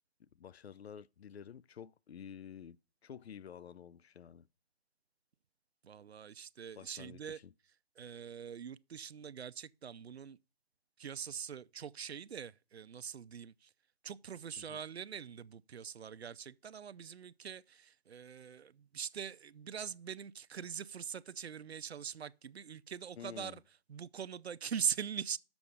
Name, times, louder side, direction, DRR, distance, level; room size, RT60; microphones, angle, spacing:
voice 1, 0.2-2.8 3.0-4.5 6.7-7.5 14.6-14.8 23.2-23.6, left 8 dB, 90° left, 0.5 m, -50 dB
voice 2, 5.8-7.4 8.0-10.4 11.0-13.7 14.0-23.6 23.9-25.4, right 7 dB, 85° right, 0.6 m, -42 dB
7.1 x 6.1 x 6.6 m
hypercardioid pair, 175°, 31 cm